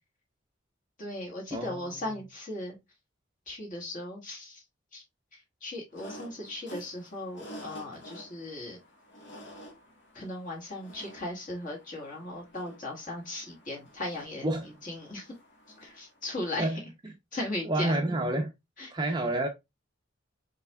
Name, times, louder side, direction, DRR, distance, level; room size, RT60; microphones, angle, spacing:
voice 1, 1.0-2.8 3.5-4.6 4.9-5.0 5.3-8.8 10.1-14.5 14.8-15.3 15.8-16.8 17.3-18.0 18.8-18.9, left 1 dB, 40° left, 1.8 m, -37 dB
voice 2, 1.5-2.1 14.4-14.7 16.6-16.8 17.0-17.1 17.7-18.5 18.9-19.5, right 1 dB, 20° right, 0.6 m, -29 dB
sound 1, 5.9-16.2, equal, 60° left, 1.5 m, -50 dB
4.6 x 4.2 x 2.2 m
head